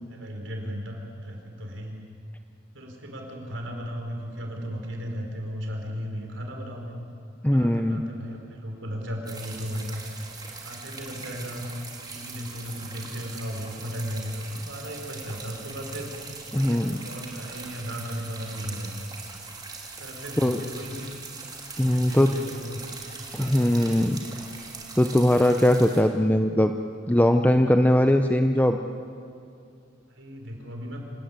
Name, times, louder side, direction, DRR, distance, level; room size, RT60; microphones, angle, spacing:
voice 1, 0.1-2.0 2.7-7.0 7.5-10.0 10.6-11.7 12.1-16.2 16.5-19.1 20.0-21.1 21.8-22.8 23.4-24.1 30.1-31.0, equal, 70° right, 2 dB, 4.6 m, -36 dB
voice 2, 7.4-8.0 16.5-17.0 20.4-20.6 21.8-22.3 23.3-24.2 25.0-26.8 27.1-28.8, left 1 dB, 10° left, 6 dB, 0.7 m, -20 dB
sound 1, 9.3-26.0, right 4 dB, 20° right, 3.3 m, -41 dB
27.0 x 17.5 x 9.6 m, 2.4 s
head